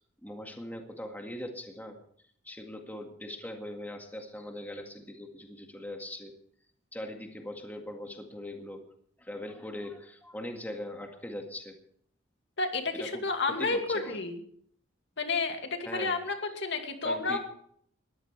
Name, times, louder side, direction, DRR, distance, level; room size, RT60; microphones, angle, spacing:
voice 1, 0.0-2.0 2.4-6.3 6.9-8.8 9.2-11.8 12.9-14.2 15.8-16.6 17.0-17.4, left 1 dB, 10° left, 3 dB, 2.0 m, -41 dB
voice 2, 12.6-14.4 15.2-17.4, left 3 dB, 65° left, 4 dB, 2.4 m, -31 dB
21.0 x 14.5 x 3.4 m, 0.63 s
head